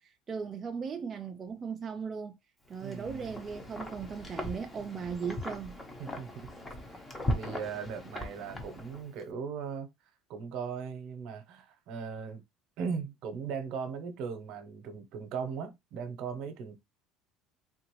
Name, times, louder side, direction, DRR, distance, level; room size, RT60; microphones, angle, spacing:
voice 1, 0.0-2.4 2.7-5.8, right 6 dB, 25° right, 0.3 m, -38 dB
Wind, 2.7-9.2, left 1 dB, 10° left, 0.7 m, -39 dB
voice 2, 2.8-3.4 6.0-6.5 6.9-7.0 7.3-9.9 10.3-12.4 12.8-16.8, right 6 dB, 55° right, 0.8 m, -38 dB
3.7 x 2.5 x 3.0 m
cardioid pair, 150°, 0 cm